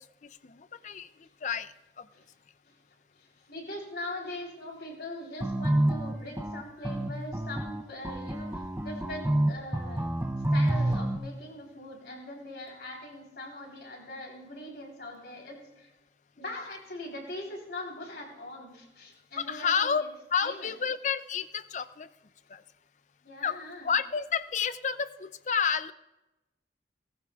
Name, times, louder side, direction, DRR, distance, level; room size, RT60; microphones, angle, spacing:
voice 1, 0.4-1.1 1.4-2.1 19.4-20.0 20.3-22.1 22.5-22.6 23.4-23.6 23.8-25.9, left 6 dB, 40° left, 14 dB, 0.4 m, -30 dB
voice 2, 3.1-10.1 10.5-15.9 16.4-20.1 20.4-20.7 23.2-23.9, left 1 dB, 65° left, 0 dB, 3.6 m, -42 dB
sound 1, 5.4-11.2, right 1 dB, 10° right, 0.6 m, -28 dB
18.0 x 15.0 x 2.4 m, 1.0 s
head